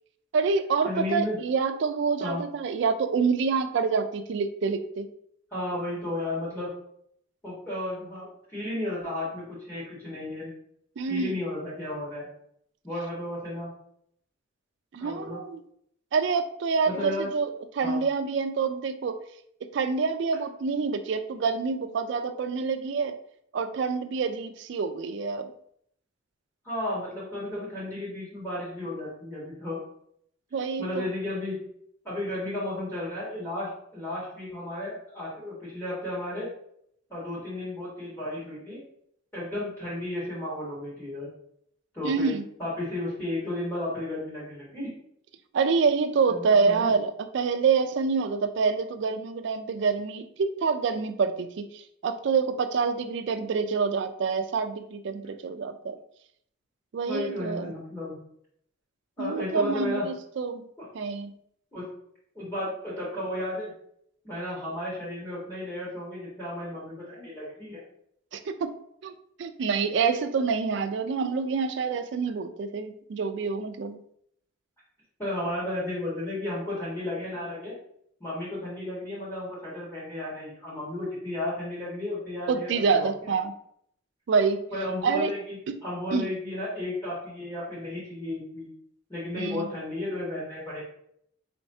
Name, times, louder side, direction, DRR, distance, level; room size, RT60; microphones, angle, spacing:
voice 1, 0.3-5.1 11.0-11.4 14.9-15.6 16.1-19.2 19.7-23.1 23.5-25.5 30.5-31.1 42.0-42.4 45.5-56.0 56.9-57.7 59.2-60.7 60.9-61.3 68.3-68.7 69.0-69.1 69.4-74.0 82.5-83.5 84.3-84.6 85.0-85.3 85.7-85.8 86.1-86.3 89.4-89.7, right 5 dB, 60° right, 9 dB, 0.3 m, -27 dB
voice 2, 0.8-1.4 2.2-2.4 5.5-6.7 7.4-10.5 11.0-12.3 12.8-13.7 15.0-15.4 16.9-17.3 17.8-18.0 26.6-29.8 30.8-31.5 32.0-36.5 37.1-38.8 39.3-41.3 41.9-42.3 42.6-44.9 46.3-46.9 57.1-58.2 59.2-60.0 60.8-60.9 61.7-61.8 62.3-63.7 64.2-67.8 75.2-77.7 78.2-82.7 82.9-83.3 84.7-88.7 89.1-90.8, left 1 dB, 10° left, -8 dB, 1.6 m, -33 dB
4.3 x 3.1 x 2.7 m, 0.69 s
head